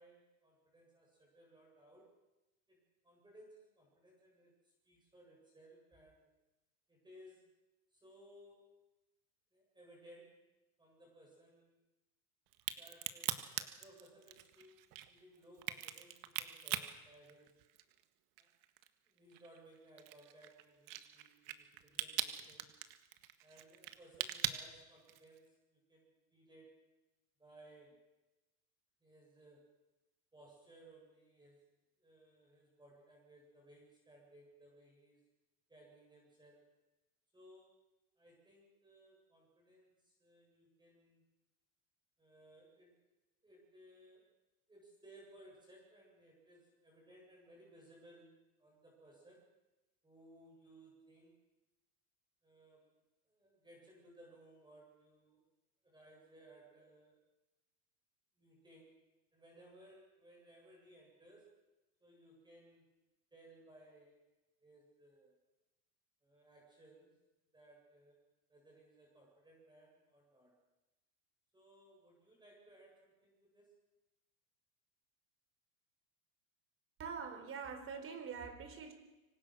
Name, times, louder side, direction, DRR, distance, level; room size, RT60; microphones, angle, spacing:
voice 1, 0.0-2.1 2.7-6.3 6.9-7.5 7.9-8.7 9.5-10.4 10.8-11.8 12.8-13.5 13.7-17.6 18.4-18.5 19.1-22.8 23.4-26.9 27.4-28.0 29.0-29.7 30.3-31.6 32.0-35.2 35.7-36.7 37.3-37.8 38.2-41.3 42.2-43.0 43.4-44.3 44.7-49.5 50.0-51.3 52.4-52.9 53.2-55.4 55.8-57.2 58.4-59.0 59.3-61.5 62.0-62.9 63.3-64.2 64.6-65.3 66.2-67.2 67.5-68.2 68.5-70.6 71.5-73.8, right 1 dB, 10° right, -1 dB, 7.8 m, -62 dB
Crack, 12.5-18.0 18.4-25.4, right 13 dB, 45° right, 1.9 m, -41 dB
voice 2, 77.0-78.9, right 6 dB, 30° right, 8 dB, 4.4 m, -44 dB
25.5 x 25.0 x 6.4 m, 1.1 s
supercardioid pair, 140°, 43 cm